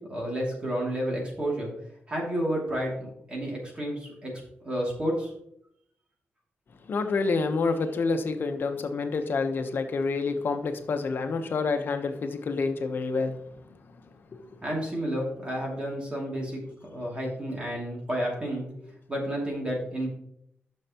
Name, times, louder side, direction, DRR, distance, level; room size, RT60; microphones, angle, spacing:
voice 1, 0.1-1.7 2.1-4.3 4.6-5.3 14.6-18.6 19.1-20.1, equal, 25° right, -3 dB, 2.6 m, -31 dB
voice 2, 6.9-13.4 13.7-13.8, left 4 dB, 55° left, 6 dB, 1.0 m, -28 dB
10.5 x 6.5 x 3.0 m, 0.73 s
wide cardioid pair, 150°, 4 cm